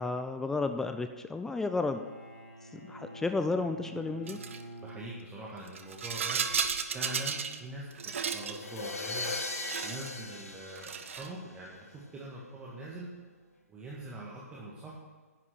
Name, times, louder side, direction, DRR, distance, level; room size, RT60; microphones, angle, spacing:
voice 1, 0.0-2.0 2.7-4.4, left 3 dB, 5° left, 8 dB, 0.4 m, -32 dB
Bowed string instrument, 1.6-5.7, right 1 dB, 90° right, 4.1 m, -48 dB
Rattle, 4.3-4.6 5.7-7.6 7.9-8.6 9.4-10.1 10.7-11.3, right 6 dB, 55° right, 0.9 m, -34 dB
voice 2, 4.8-6.4 6.9-9.3 9.8-13.1 13.7-15.0, right 2 dB, 15° right, -5 dB, 1.7 m, -43 dB
sound 1, 8.4-11.7, left 3 dB, 70° left, 1.7 m, -38 dB
10.5 x 9.6 x 6.1 m, 1.4 s
figure-of-eight pair, 125°, 8 cm